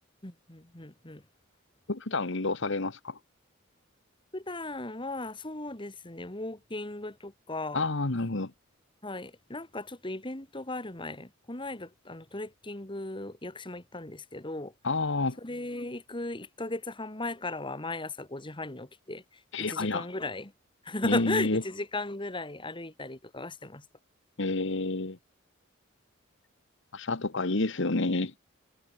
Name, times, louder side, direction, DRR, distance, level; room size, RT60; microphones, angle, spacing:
voice 1, 0.2-1.2 4.3-7.9 9.0-14.7 15.4-19.2 19.6-20.5 20.8-23.8, left 2 dB, 25° left, 2.1 m, -36 dB
voice 2, 1.9-3.2 7.7-8.5 14.8-15.4 19.5-20.1 21.0-21.6 24.4-25.2 26.9-28.3, left 2 dB, 60° left, 1.4 m, -29 dB
head